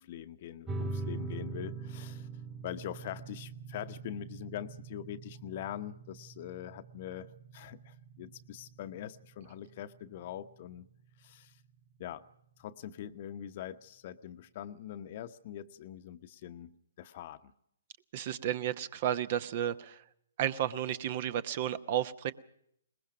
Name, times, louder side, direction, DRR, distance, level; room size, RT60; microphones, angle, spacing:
voice 1, 0.0-2.3 2.6-10.9 11.2-11.6 12.0-12.2 12.6-17.5, left 11 dB, 45° left, 11 dB, 0.9 m, -43 dB
sound 1, 0.7-11.7, right 3 dB, 15° right, 1.6 m, -43 dB
voice 2, 18.1-20.0 20.4-22.3, right 10 dB, 45° right, 15 dB, 0.9 m, -32 dB
21.5 x 20.0 x 6.1 m, 0.72 s
figure-of-eight pair, 130°, 0 cm